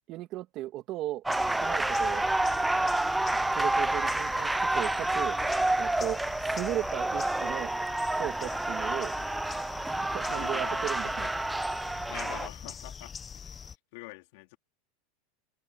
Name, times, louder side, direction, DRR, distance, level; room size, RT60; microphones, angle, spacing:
voice 1, 0.1-1.2 1.6-2.2 3.5-5.4 5.8-7.7 8.1-9.1 10.0-11.3, right 15 dB, 45° right, 1.7 m, -36 dB
sound 1, 1.3-13.8, left 6 dB, 20° left, 1.1 m, -44 dB
sound 2, 1.3-12.5, right 2 dB, 5° right, 0.5 m, -29 dB
voice 2, 10.3-11.3 12.1-14.6, left 24 dB, 65° left, 3.7 m, -46 dB
supercardioid pair, 140°, 0 cm